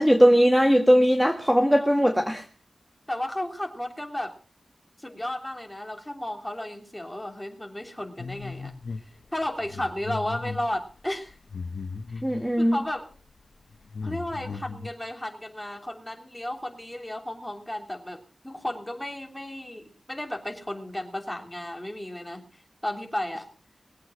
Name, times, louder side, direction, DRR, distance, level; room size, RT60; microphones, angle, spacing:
voice 1, 0.0-2.5 12.2-12.8, equal, 5° right, 4 dB, 1.6 m, -19 dB
voice 2, 3.1-4.4 5.0-8.7 9.3-11.4 12.1-12.2 12.6-13.1 14.0-23.5, left 1 dB, 10° left, 3 dB, 3.2 m, -34 dB
sound 1, 8.2-9.1 9.4-12.5 13.1-13.3 13.6-14.9, left 4 dB, 70° left, 1.1 m, -36 dB
21.0 x 8.3 x 6.1 m, 0.41 s
wide cardioid pair, 85°, 0 cm